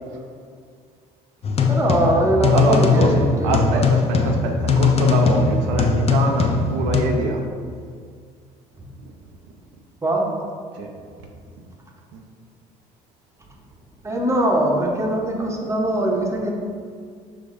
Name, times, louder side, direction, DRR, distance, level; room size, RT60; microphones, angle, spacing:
sound 1, 1.4-7.0, left 4 dB, 40° left, 0.5 m, -19 dB
voice 1, 1.7-3.8 8.8-8.9 10.0-10.3 14.0-16.5, right 1 dB, 15° right, 0 dB, 0.8 m, -21 dB
voice 2, 2.5-3.2 3.4-7.4 10.7-10.9 11.6-11.7 12.1-12.2, right 3 dB, 85° right, 1 dB, 0.5 m, -24 dB
4.9 x 3.4 x 2.5 m, 2.1 s
supercardioid pair, 70°, 17 cm